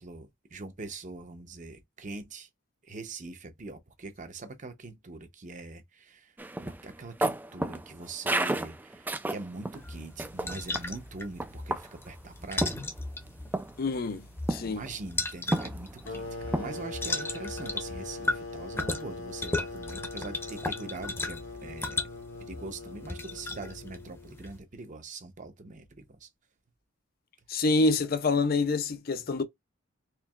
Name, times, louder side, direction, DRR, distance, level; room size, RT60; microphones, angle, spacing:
voice 1, 0.0-2.5 2.8-6.3 6.6-12.7 14.6-22.0 22.5-26.3, right 3 dB, 40° right, 0.7 m, -43 dB
sound 1, 6.4-9.8 10.2-10.9 11.4-12.1 12.6-13.3 13.5-13.8 14.5-14.9 15.5-16.1 16.5-16.8, right 1 dB, 10° right, 0.3 m, -32 dB
sound 2, 9.7-24.6, left 2 dB, 10° left, 0.7 m, -37 dB
voice 2, 13.8-14.8 27.5-29.4, left 3 dB, 50° left, 0.5 m, -27 dB
sound 3, 16.1-24.4, left 3 dB, 90° left, 1.4 m, -41 dB
4.4 x 3.0 x 2.3 m
head